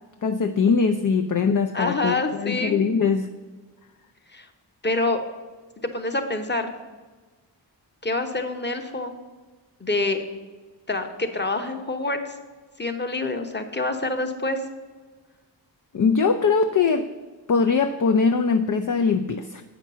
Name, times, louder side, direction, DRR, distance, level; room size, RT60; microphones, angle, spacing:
voice 1, 0.2-3.3 15.9-17.1 17.5-19.6, left 5 dB, 45° left, 7 dB, 0.5 m, -21 dB
voice 2, 1.7-2.8 4.3-4.5 4.8-5.2 5.8-6.7 8.0-9.1 9.8-10.2 10.9-12.4 12.8-14.6, left 2 dB, 25° left, 6 dB, 1.0 m, -26 dB
8.2 x 6.0 x 6.7 m, 1.3 s
wide cardioid pair, 95°, 46 cm